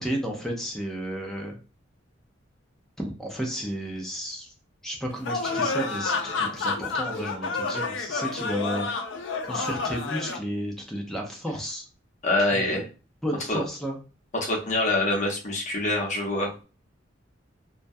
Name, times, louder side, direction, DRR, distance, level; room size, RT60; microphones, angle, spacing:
voice 1, 0.0-1.6 3.0-4.5 4.8-8.9 9.4-11.8 12.5-12.8 13.2-14.0, equal, ahead, 0 dB, 0.5 m, -32 dB
sound 1, 5.3-10.4, left 4 dB, 85° left, 0.4 m, -29 dB
voice 2, 12.2-12.8 13.5-13.6 14.3-16.6, left 2 dB, 40° left, -1 dB, 0.7 m, -25 dB
2.2 x 2.1 x 2.6 m, 0.34 s
head